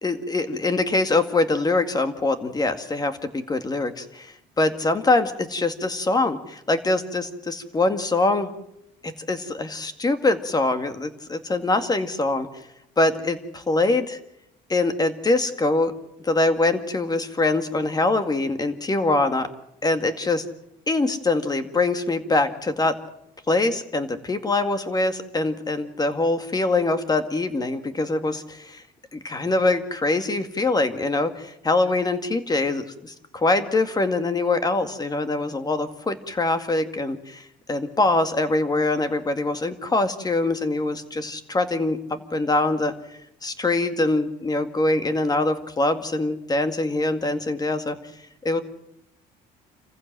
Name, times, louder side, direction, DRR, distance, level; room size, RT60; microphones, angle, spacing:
voice 1, 0.0-8.5 9.0-12.5 13.0-14.2 14.7-15.9 16.2-19.5 19.8-20.4 20.9-22.9 23.5-28.8 29.1-42.9 43.4-48.0 48.4-48.6, left 2 dB, 25° left, 9 dB, 2.1 m, -23 dB
27.0 x 15.0 x 7.6 m, 0.80 s
cardioid pair, 110°, 17 cm